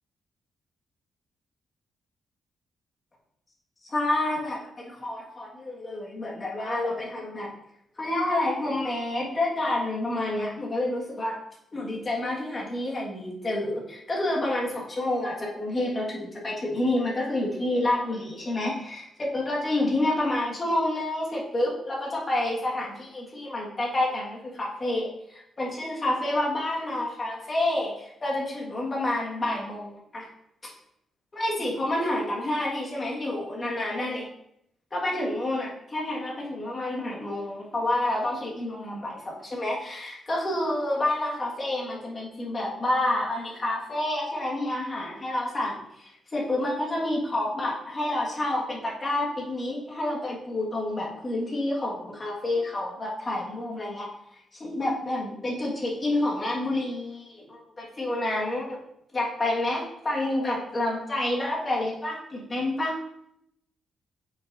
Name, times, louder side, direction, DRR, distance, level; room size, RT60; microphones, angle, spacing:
voice 1, 3.9-7.5 8.0-11.4 11.7-30.3 31.3-34.3 34.9-54.1 54.6-58.8 59.1-62.9, left 1 dB, 25° left, -3 dB, 1.7 m, -29 dB
8.1 x 5.2 x 2.6 m, 0.76 s
cardioid pair, 120°, 0 cm